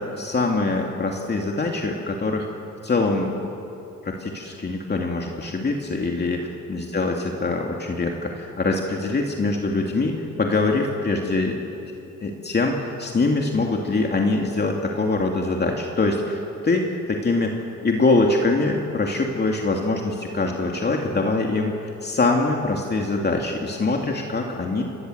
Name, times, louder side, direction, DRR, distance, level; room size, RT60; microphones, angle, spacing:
voice 1, 0.0-2.5 2.8-3.3 4.0-11.6 12.2-24.8, left 3 dB, 35° left, 0 dB, 2.9 m, -23 dB
29.0 x 21.0 x 8.2 m, 2.7 s
cardioid pair, 90°, 30 cm